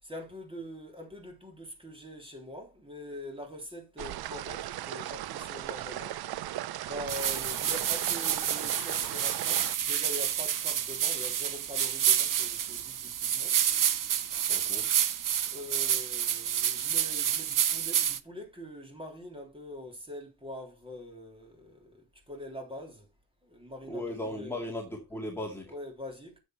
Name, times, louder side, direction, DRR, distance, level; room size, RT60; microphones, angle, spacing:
voice 1, 0.0-6.2 6.8-13.6 15.5-23.1 23.4-24.7 25.7-26.4, left 1 dB, 15° right, 3.6 m, -44 dB
sound 1, 4.0-9.8, right 13 dB, 85° right, 0.6 m, -38 dB
sound 2, 7.1-18.2, right 9 dB, 60° right, 0.9 m, -29 dB
voice 2, 14.5-14.9 23.9-25.7, left 1 dB, 5° left, 2.1 m, -37 dB
9.7 x 7.3 x 4.1 m
cardioid pair, 115°, 37 cm